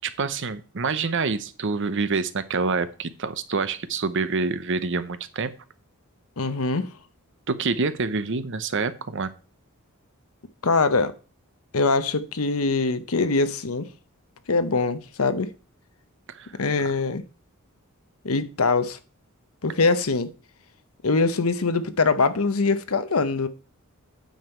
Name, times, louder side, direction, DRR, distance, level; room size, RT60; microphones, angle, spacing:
voice 1, 0.0-5.5 7.5-9.3 16.3-16.5, right 4 dB, 60° right, 0.8 m, -27 dB
voice 2, 6.4-6.9 10.6-11.1 11.7-13.9 14.5-15.5 16.6-17.2 18.2-19.0 19.6-20.3 21.0-23.5, left 3 dB, 75° left, 0.9 m, -23 dB
9.2 x 7.2 x 4.5 m
head